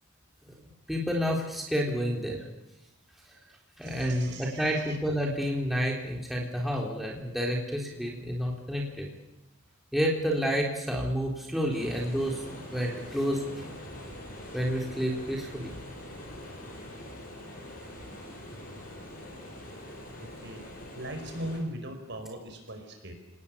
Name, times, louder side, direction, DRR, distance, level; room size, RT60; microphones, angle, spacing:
voice 1, 0.9-2.4 3.8-9.1 9.9-12.4 12.7-13.8 14.5-15.7, equal, ahead, -1 dB, 3.5 m, -29 dB
voice 2, 3.8-5.0 20.2-20.6 20.9-23.1, right 1 dB, 55° right, 6 dB, 5.0 m, -39 dB
sound 1, 11.7-21.6, left 1 dB, 40° left, 6.3 m, -44 dB
28.5 x 19.0 x 8.5 m, 0.91 s
head